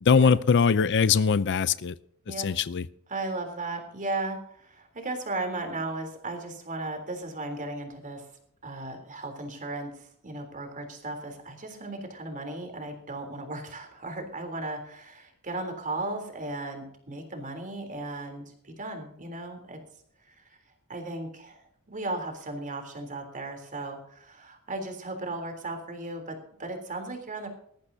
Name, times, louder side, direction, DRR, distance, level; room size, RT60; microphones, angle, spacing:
voice 1, 0.0-1.9 2.3-2.9, left 5 dB, 55° left, 16 dB, 0.5 m, -22 dB
voice 2, 3.1-8.3 8.6-19.8 20.2-20.5 20.9-27.5, right 2 dB, 35° right, 5 dB, 3.5 m, -36 dB
19.0 x 14.5 x 2.8 m, 0.66 s
head